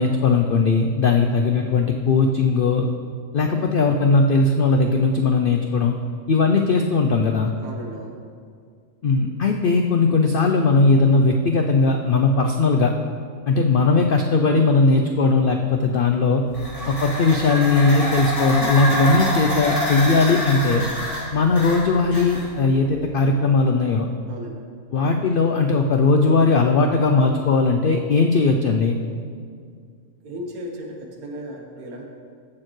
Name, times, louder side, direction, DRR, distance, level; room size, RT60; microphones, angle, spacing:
voice 1, 0.0-2.8 3.3-5.9 6.3-7.5 9.0-12.9 13.5-16.4 16.9-20.9 21.3-24.1 24.9-29.0, left 3 dB, 80° left, 4 dB, 0.4 m, -18 dB
voice 2, 7.6-8.2 24.3-24.6 30.2-32.0, equal, 80° right, 1 dB, 1.6 m, -35 dB
sound 1, 16.5-22.7, left 1 dB, 25° left, 2.0 m, -27 dB
14.5 x 6.4 x 3.1 m, 2.2 s
omnidirectional pair, 1.5 m